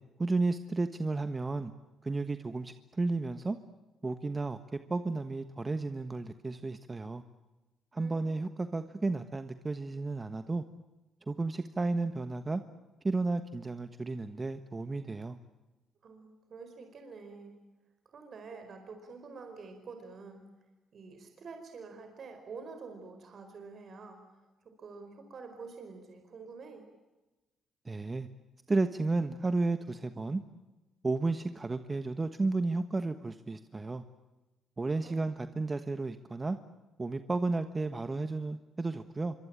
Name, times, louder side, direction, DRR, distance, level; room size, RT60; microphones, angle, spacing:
voice 1, 0.2-1.7 2.0-3.6 4.0-4.6 4.9-7.2 7.9-10.6 11.3-12.6 13.0-15.4 27.8-28.3 28.7-30.4 31.0-34.0 34.8-36.6 37.0-39.3, right 3 dB, 25° right, 9 dB, 1.3 m, -32 dB
voice 2, 7.9-8.4 16.0-17.5 18.0-20.5 20.9-24.2 24.6-26.9 34.9-35.3, right 4 dB, 55° right, 6 dB, 4.7 m, -47 dB
26.5 x 24.5 x 8.9 m, 1.1 s
cardioid pair, 90°, 0 cm